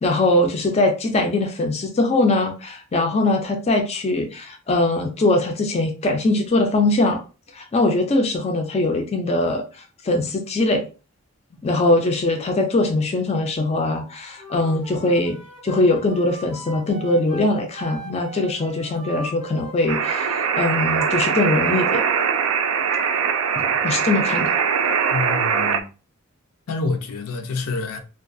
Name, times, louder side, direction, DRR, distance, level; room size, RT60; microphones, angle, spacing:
voice 1, 0.0-7.2 7.5-10.9 11.6-22.0 23.6-24.5, left 2 dB, 30° left, 0.3 m, -21 dB
Wind instrument woodwind instrument, 14.4-21.1, right 2 dB, 20° right, 0.6 m, -39 dB
sound 1, 19.9-25.8, right 6 dB, 70° right, 0.3 m, -21 dB
voice 2, 25.1-25.9 26.7-28.0, left 3 dB, 85° left, 0.5 m, -27 dB
2.3 x 2.3 x 2.5 m
head